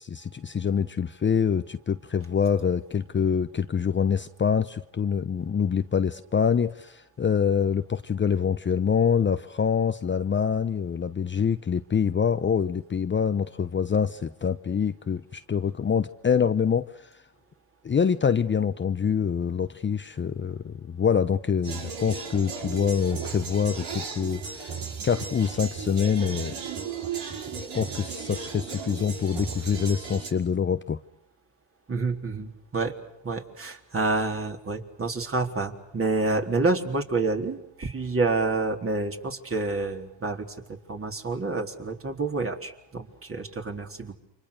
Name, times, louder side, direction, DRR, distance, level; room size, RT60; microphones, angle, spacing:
voice 1, 0.0-17.2 17.8-24.8 25.0-26.5 27.7-31.0, left 7 dB, 25° left, 10 dB, 0.9 m, -25 dB
sound 1, 21.6-30.3, right 6 dB, 65° right, 5.6 m, -35 dB
voice 2, 31.9-33.0 33.2-40.5 40.9-44.1, right 3 dB, 30° right, 3 dB, 3.9 m, -28 dB
29.0 x 25.0 x 6.6 m, 0.82 s
supercardioid pair, 70°, 43 cm